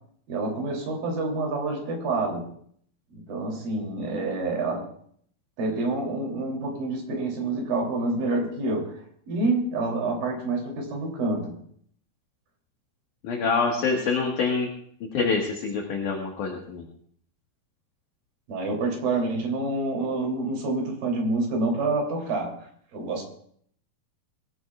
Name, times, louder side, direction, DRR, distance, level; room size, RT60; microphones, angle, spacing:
voice 1, 0.3-2.5 3.1-4.9 5.6-11.6 18.5-22.5 22.9-23.3, right 2 dB, 65° right, 1 dB, 4.7 m, -27 dB
voice 2, 13.2-14.7 15.0-16.8, left 4 dB, 60° left, 0 dB, 2.7 m, -26 dB
23.0 x 16.0 x 2.4 m, 0.63 s
omnidirectional pair, 4.5 m